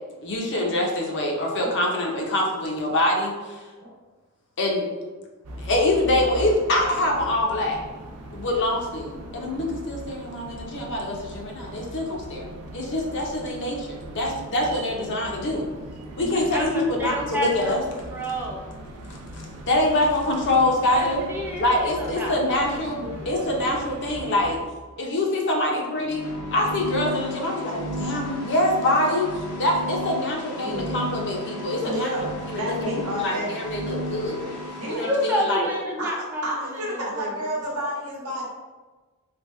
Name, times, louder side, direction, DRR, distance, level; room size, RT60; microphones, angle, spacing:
voice 1, 0.2-3.3 4.6-4.9 5.6-7.8 8.3-15.7 16.2-17.8 19.1-21.2 21.6-24.6 25.0-26.3 26.5-29.3 29.6-32.1 32.5-34.5 34.9-35.7, left 1 dB, 55° left, 0 dB, 0.6 m, -25 dB
sound 1, 5.4-24.6, right 1 dB, 85° right, 0.5 m, -40 dB
voice 2, 16.2-18.6 20.9-22.4 22.7-23.5 34.9-37.5, left 1 dB, 10° right, -3 dB, 0.6 m, -30 dB
sound 2, 26.0-35.1, left 1 dB, 85° left, 1.0 m, -34 dB
voice 3, 30.5-31.1 31.8-33.6 34.8-35.1 36.0-38.4, equal, 70° right, -3 dB, 0.9 m, -31 dB
3.4 x 2.2 x 3.1 m, 1.3 s
head